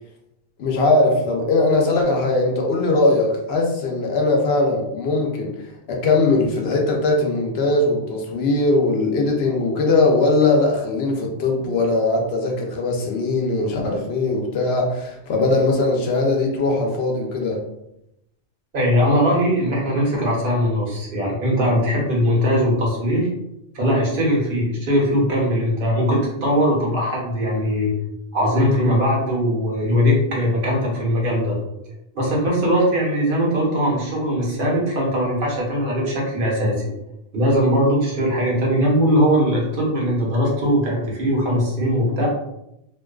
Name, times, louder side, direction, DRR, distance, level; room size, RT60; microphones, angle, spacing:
voice 1, 0.6-17.6, left 2 dB, 85° left, 1 dB, 0.8 m, -20 dB
voice 2, 18.7-23.3 23.7-27.9 28.3-31.6 32.1-36.7 37.3-42.3, equal, 60° right, -3 dB, 0.9 m, -20 dB
2.5 x 2.2 x 2.3 m, 0.84 s
omnidirectional pair, 1.0 m